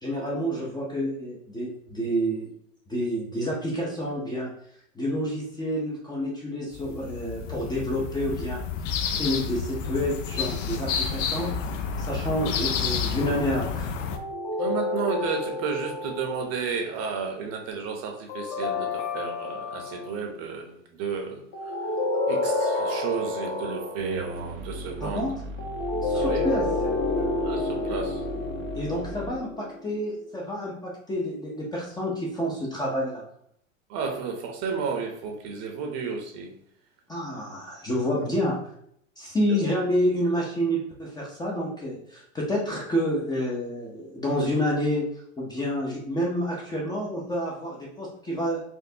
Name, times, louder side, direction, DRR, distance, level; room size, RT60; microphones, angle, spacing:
voice 1, 0.0-2.5 2.9-4.5 5.0-8.6 9.2-11.6 12.0-13.9 25.0-25.4 26.0-26.7 28.7-33.2 37.1-38.6 39.2-45.0 45.4-48.6, equal, 10° left, -4 dB, 0.5 m, -28 dB
sound 1, 6.7-14.2, left 6 dB, 70° left, 0.6 m, -30 dB
sound 2, 14.1-16.6 18.3-20.1 21.5-24.2 25.6-30.1, left 2 dB, 35° left, 0.8 m, -29 dB
voice 2, 14.6-21.7 22.3-25.3 26.1-26.5 27.4-28.2 33.9-36.6 39.5-39.7, right 5 dB, 40° right, 3 dB, 0.8 m, -32 dB
sound 3, 24.0-29.3, equal, 80° right, 0.8 m, -37 dB
4.3 x 2.6 x 2.7 m, 0.69 s
hypercardioid pair, 120°, 40 cm